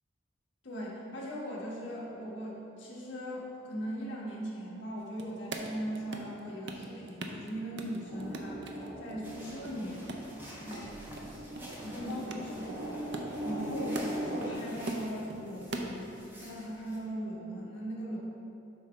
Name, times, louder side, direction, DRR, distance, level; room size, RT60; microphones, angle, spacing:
voice 1, 0.6-10.1 10.4-10.9 11.8-13.0 13.4-14.0 14.3-18.2, equal, 70° left, -5 dB, 1.4 m, -39 dB
sound 1, 5.0-6.4 6.7-7.5 7.8-9.1 9.4-10.9 11.2-11.3 11.6-14.5 14.8-16.1, right 2 dB, 60° right, 0.6 m, -40 dB
sound 2, 8.1-14.5, right 1 dB, 90° right, 1.2 m, -40 dB
sound 3, 9.2-17.0, equal, 10° right, 1.0 m, -49 dB
7.5 x 3.2 x 5.5 m, 2.8 s
head